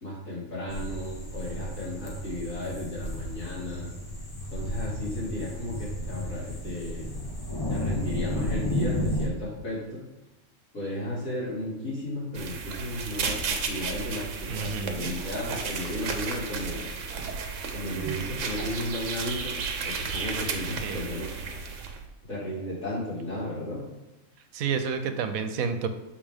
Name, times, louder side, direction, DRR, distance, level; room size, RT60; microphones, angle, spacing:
voice 1, 0.0-3.9 4.5-7.2 7.7-10.0 10.7-16.9 17.7-19.6 19.8-21.3 22.3-23.8, left 1 dB, 70° left, -7 dB, 3.2 m, -34 dB
sound 1, 0.7-9.3, left 1 dB, 20° left, 0.7 m, -33 dB
sound 2, 12.3-22.1, right 5 dB, 65° right, 1.1 m, -33 dB
voice 2, 14.5-15.1 20.8-21.0 24.5-25.9, right 6 dB, 80° right, 9 dB, 1.1 m, -30 dB
6.9 x 5.3 x 3.6 m, 0.97 s
omnidirectional pair, 1.5 m